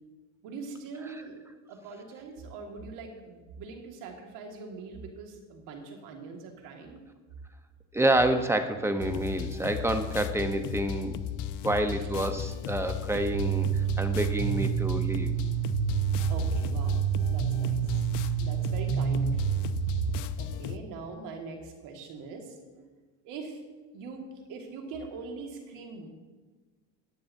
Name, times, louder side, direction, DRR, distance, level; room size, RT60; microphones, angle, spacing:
voice 1, 0.4-1.4 1.7-7.0 12.0-12.1 16.3-18.1 18.4-19.5 20.4-22.9 23.2-23.6 23.9-26.1, right 4 dB, 85° right, 2 dB, 1.9 m, -42 dB
voice 2, 7.9-11.1 11.6-15.3, right 1 dB, 10° right, 7 dB, 0.8 m, -28 dB
sound 1, 9.0-20.8, left 10 dB, 70° left, 0.6 m, -35 dB
sound 2, 13.3-20.2, right 10 dB, 55° right, 0.7 m, -28 dB
14.5 x 9.8 x 2.7 m, 1.3 s
cardioid pair, 110°, 31 cm